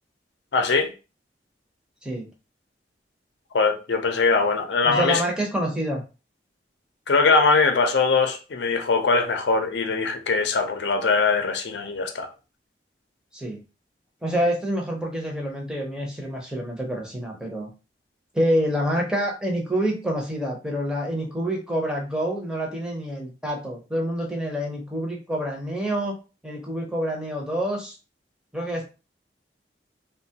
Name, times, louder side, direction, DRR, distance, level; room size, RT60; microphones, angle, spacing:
voice 1, 0.5-0.9 3.5-5.2 7.1-12.3, left 4 dB, 75° left, 0.5 m, -21 dB
voice 2, 4.8-6.0 13.3-13.6 14.2-17.7 18.3-26.2 26.4-28.0 28.5-28.8, equal, 5° right, 0.6 m, -27 dB
3.0 x 2.2 x 2.8 m
head